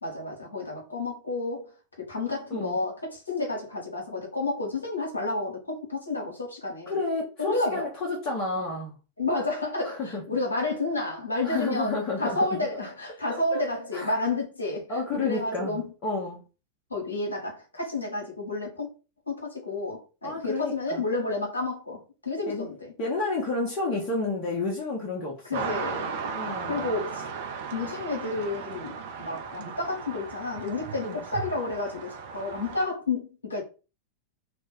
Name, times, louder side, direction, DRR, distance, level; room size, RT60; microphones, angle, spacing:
voice 1, 0.0-1.7 2.0-7.0 7.4-7.9 9.2-14.9 15.1-15.9 16.9-18.9 19.3-22.9 25.4-27.2 27.7-33.6, left 2 dB, 80° left, 0.9 m, -31 dB
voice 2, 6.9-9.0 9.8-10.2 11.4-12.7 13.3-13.6 13.9-14.2 14.9-16.4 20.2-21.0 22.5-22.7 23.0-25.7 26.3-26.9 31.0-31.2, left 3 dB, 35° left, 0.8 m, -31 dB
sound 1, 25.5-32.9, right 6 dB, 50° right, 0.5 m, -36 dB
2.5 x 2.1 x 3.6 m
figure-of-eight pair, 90°, 0 cm